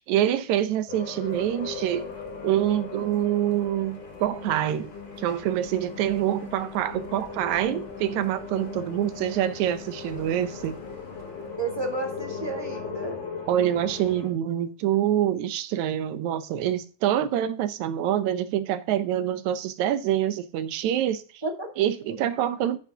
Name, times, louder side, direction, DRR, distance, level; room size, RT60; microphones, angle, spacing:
voice 1, 0.0-2.0 2.4-4.9 5.2-10.8 13.5-21.2 21.8-22.8, right 11 dB, 75° right, 2.1 m, -26 dB
sound 1, 0.9-14.3, left 5 dB, 70° left, 4.0 m, -38 dB
sound 2, 1.2-11.6, left 3 dB, 35° left, 0.8 m, -50 dB
voice 2, 11.6-13.2 21.4-21.7 22.1-22.2, right 2 dB, 20° right, 0.6 m, -32 dB
11.0 x 10.5 x 2.9 m
omnidirectional pair, 3.5 m